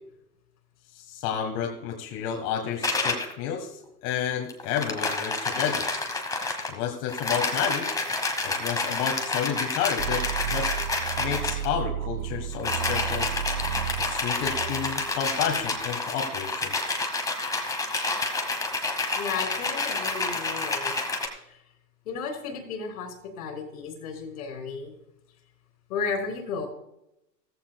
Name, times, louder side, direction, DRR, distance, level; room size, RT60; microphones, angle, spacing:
voice 1, 0.9-3.7 4.0-5.9 6.7-7.9 8.4-10.2 10.5-10.7 11.2-13.3 14.0-16.7, left 8 dB, 40° left, 3 dB, 1.6 m, -30 dB
sound 1, 2.8-3.3 4.5-6.7 7.1-11.7 12.5-21.3, left 3 dB, 5° left, 1.3 m, -29 dB
sound 2, 10.0-15.9, right 10 dB, 55° right, 0.6 m, -33 dB
voice 2, 19.2-21.0 21.5-21.6 22.1-24.9 25.9-26.7, left 5 dB, 60° left, 4 dB, 3.5 m, -33 dB
14.5 x 14.5 x 2.3 m, 0.86 s
hypercardioid pair, 120°, 50 cm